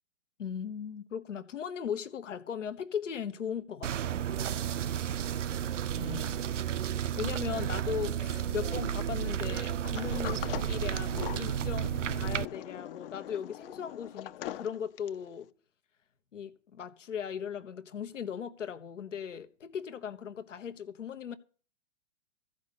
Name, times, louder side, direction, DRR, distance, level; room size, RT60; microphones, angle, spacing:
voice 1, 0.4-4.2 6.0-6.4 7.1-15.5 16.3-21.3, left 8 dB, 85° left, 1.2 m, -38 dB
sound 1, 3.8-12.5, right 9 dB, 85° right, 0.6 m, -32 dB
Sliding door, 9.8-15.3, left 13 dB, 50° left, 0.8 m, -42 dB
14.5 x 5.3 x 8.4 m
hypercardioid pair, 125°, 36 cm